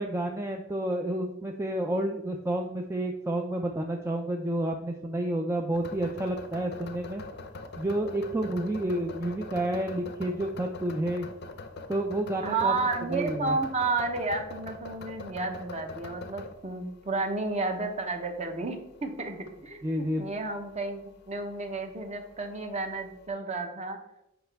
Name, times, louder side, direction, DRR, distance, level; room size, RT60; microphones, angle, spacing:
voice 1, 0.0-7.2 7.8-11.3 11.9-12.7 13.1-13.6 19.8-20.3, right 1 dB, 15° right, 1 dB, 0.4 m, -30 dB
sound 1, 5.7-23.3, left 3 dB, 55° left, 0.6 m, -44 dB
voice 2, 12.4-21.0 21.3-24.0, right 3 dB, 35° right, 4 dB, 0.9 m, -31 dB
7.9 x 5.3 x 3.4 m, 0.88 s
head